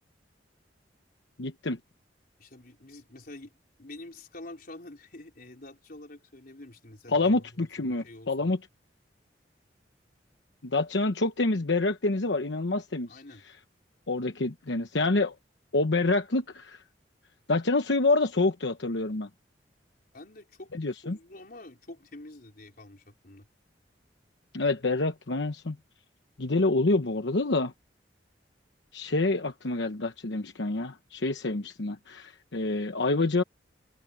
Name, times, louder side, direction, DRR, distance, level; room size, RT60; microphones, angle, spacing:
voice 1, 1.4-1.8 7.1-8.6 10.6-13.2 14.1-15.3 15.7-16.8 17.5-19.3 20.7-21.2 24.5-25.8 26.4-27.7 28.9-33.4, left 2 dB, 80° left, 1.0 m, -27 dB
voice 2, 2.4-3.5 3.8-8.6 13.1-13.4 20.1-20.7 21.0-23.5, left 2 dB, 55° left, 4.3 m, -47 dB
head